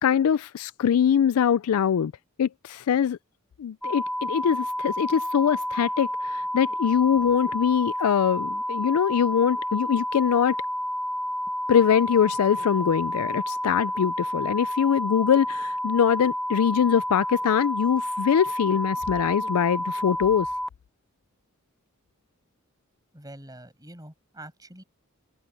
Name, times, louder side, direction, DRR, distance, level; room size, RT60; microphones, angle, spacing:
voice 1, 0.0-2.1 2.4-3.2 3.6-10.6 11.7-20.5, left 8 dB, 90° left, 0.4 m, -23 dB
sound 1, 3.8-20.7, equal, ahead, 0.4 m, -30 dB
voice 2, 23.1-24.8, right 1 dB, 20° right, 7.4 m, -45 dB
head